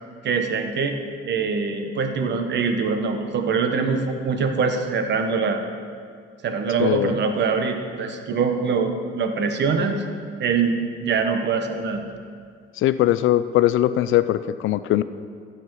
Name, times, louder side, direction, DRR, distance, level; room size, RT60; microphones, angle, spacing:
voice 1, 0.2-1.0 1.2-5.6 6.4-10.0 10.4-12.0, right 5 dB, 60° right, 6 dB, 1.1 m, -23 dB
voice 2, 6.8-7.2 12.8-15.0, left 13 dB, 80° left, 14 dB, 0.5 m, -20 dB
15.0 x 7.2 x 4.7 m, 2.1 s
cardioid pair, 90°, 20 cm